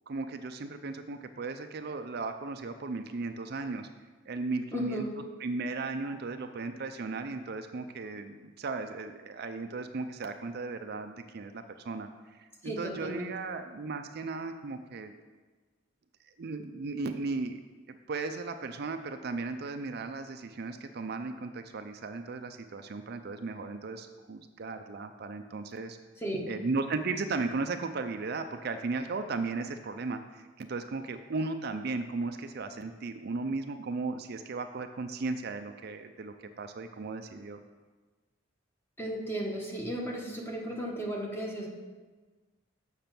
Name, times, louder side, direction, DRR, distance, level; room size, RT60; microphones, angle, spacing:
voice 1, 0.1-3.9 4.3-5.0 5.4-15.1 16.4-17.6 17.9-26.0 26.5-37.6, right 3 dB, 55° right, 7 dB, 0.5 m, -36 dB
voice 2, 4.7-5.1 12.6-13.3 26.2-26.5 39.0-41.7, right 1 dB, 10° left, -1 dB, 1.2 m, -35 dB
6.9 x 6.6 x 5.9 m, 1.3 s
head